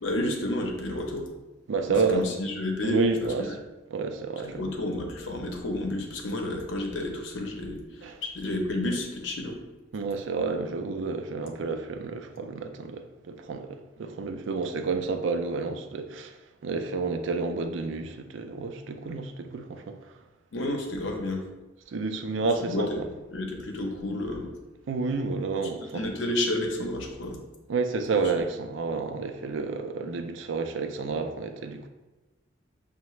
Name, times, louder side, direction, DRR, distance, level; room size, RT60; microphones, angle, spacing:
voice 1, 0.0-1.3 1.9-3.5 4.5-7.8 8.2-9.6 20.5-21.4 22.6-23.0 23.3-24.5 25.9-27.4 28.1-28.2, left 1 dB, 75° left, 2 dB, 0.7 m, -30 dB
voice 2, 1.7-2.3 2.8-3.6 3.9-4.6 8.0-8.2 9.9-16.3 16.6-19.9 21.9-22.9 24.9-26.1 27.7-31.9, right 4 dB, 75° right, 7 dB, 0.4 m, -30 dB
5.6 x 2.1 x 3.0 m, 1.1 s
head